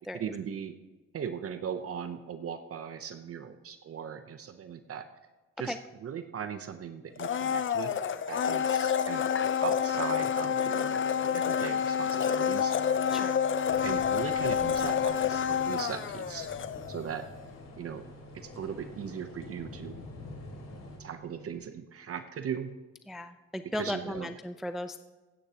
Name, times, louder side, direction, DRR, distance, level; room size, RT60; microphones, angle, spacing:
voice 1, 0.1-0.7 1.1-5.1 5.6-7.9 8.3-9.2 9.6-11.0 11.3-12.8 13.8-16.5 16.9-17.3 17.8-18.0 18.3-20.0 21.0-22.7 23.7-24.3, right 8 dB, 50° right, 9 dB, 0.8 m, -38 dB
Domestic sounds home sounds, 7.2-17.1 17.4-17.5, left 8 dB, 40° left, 0.6 m, -28 dB
sound 1, 9.7-21.6, right 4 dB, 75° right, 4.1 m, -53 dB
sound 2, 13.6-21.0, left 3 dB, 55° left, 3.0 m, -47 dB
voice 2, 23.1-25.0, left 1 dB, ahead, 10 dB, 0.4 m, -36 dB
15.5 x 10.0 x 2.9 m, 1.2 s
cardioid pair, 90°, 30 cm